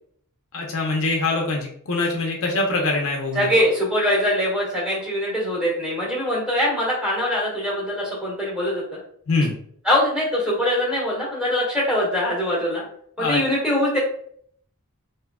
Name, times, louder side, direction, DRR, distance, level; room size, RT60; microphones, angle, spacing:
voice 1, 0.5-3.5 9.3-9.6 13.2-13.4, left 3 dB, 65° left, 0 dB, 0.6 m, -23 dB
voice 2, 3.3-9.0 9.8-12.8 13.2-14.0, left 1 dB, 5° right, -5 dB, 1.4 m, -23 dB
3.5 x 2.8 x 2.2 m, 0.63 s
head